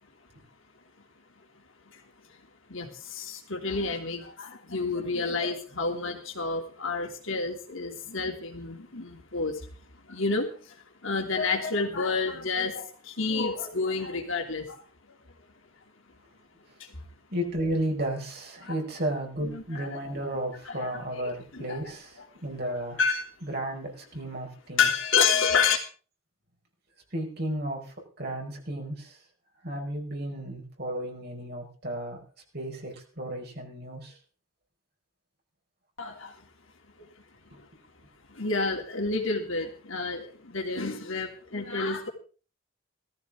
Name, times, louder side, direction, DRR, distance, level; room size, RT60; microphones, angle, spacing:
voice 1, 2.7-9.6 10.1-10.7 11.0-14.8 16.8-17.0 18.6-18.8 19.5-19.6 20.7-20.9 21.5-21.8 23.0-23.2 24.8-25.8 36.0-36.3 37.0-37.1 38.3-42.1, left 4 dB, 70° left, 3 dB, 3.0 m, -29 dB
voice 2, 17.3-23.0 23.4-24.9 27.1-29.2 29.6-32.2 32.5-34.2 37.5-37.6, right 1 dB, 50° right, 1 dB, 5.0 m, -33 dB
18.0 x 14.5 x 3.8 m, 0.38 s
head